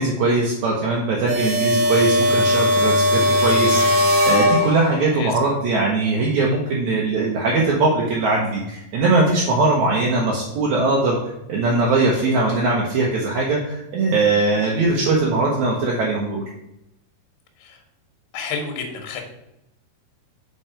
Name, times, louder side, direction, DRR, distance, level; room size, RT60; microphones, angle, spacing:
voice 1, 0.0-11.2 11.5-16.4, right 3 dB, 70° right, -3 dB, 1.8 m, -20 dB
sound 1, 1.3-5.2, left 1 dB, 85° right, 3.0 m, -18 dB
voice 2, 18.3-19.2, left 5 dB, 85° left, 2 dB, 3.0 m, -30 dB
7.3 x 4.5 x 4.9 m, 0.86 s
omnidirectional pair, 4.5 m